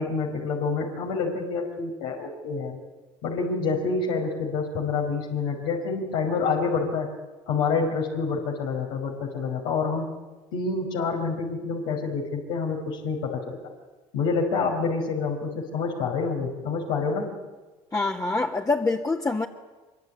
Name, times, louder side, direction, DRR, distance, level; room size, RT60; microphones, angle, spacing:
voice 1, 0.0-2.8 3.2-7.1 7.5-10.1 10.5-13.6 14.1-17.3, left 4 dB, 75° left, 0 dB, 5.4 m, -27 dB
voice 2, 17.9-19.5, left 3 dB, 20° left, 0 dB, 2.4 m, -25 dB
24.5 x 23.5 x 9.9 m, 1.2 s
hypercardioid pair, 65°, 16 cm